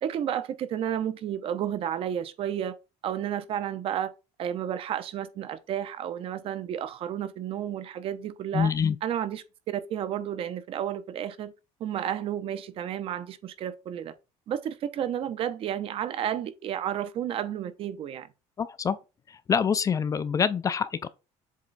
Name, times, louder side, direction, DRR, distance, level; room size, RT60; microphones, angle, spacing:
voice 1, 0.0-2.8 3.0-4.1 4.4-8.7 9.0-11.5 11.8-14.1 14.5-18.3, right 10 dB, 50° right, 0.7 m, -32 dB
voice 2, 8.5-9.0 18.6-19.0 19.3-21.1, left 6 dB, 25° left, 0.4 m, -26 dB
7.4 x 3.1 x 4.0 m
cardioid pair, 135°, 12 cm